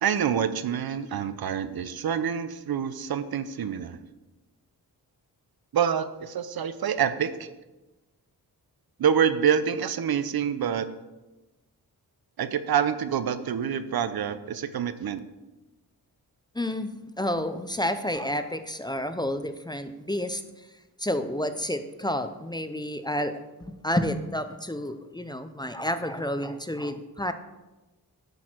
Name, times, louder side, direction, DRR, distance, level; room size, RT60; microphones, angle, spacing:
voice 1, 0.0-4.0 5.7-7.5 9.0-10.9 12.4-15.2, right 8 dB, 65° right, 12 dB, 0.7 m, -26 dB
voice 2, 16.5-16.9 17.2-20.4 21.0-27.3, left 1 dB, 10° left, 9 dB, 0.6 m, -30 dB
10.5 x 6.3 x 4.5 m, 1.1 s
cardioid pair, 80°, 39 cm